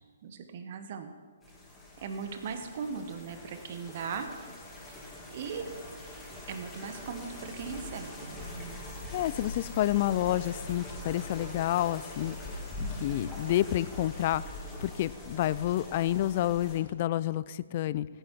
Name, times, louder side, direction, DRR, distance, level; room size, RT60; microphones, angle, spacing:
voice 1, 0.2-1.1 2.0-4.3 4.9-5.0 5.3-5.7 6.5-8.8, right 6 dB, 45° right, 8 dB, 1.2 m, -39 dB
sound 1, 1.4-16.8, left 2 dB, 10° left, 2.9 m, -42 dB
voice 2, 9.1-12.3 13.0-14.4 14.8-18.1, left 13 dB, 40° left, 18 dB, 0.4 m, -29 dB
15.5 x 8.9 x 4.6 m, 1.5 s
figure-of-eight pair, 130°, 0 cm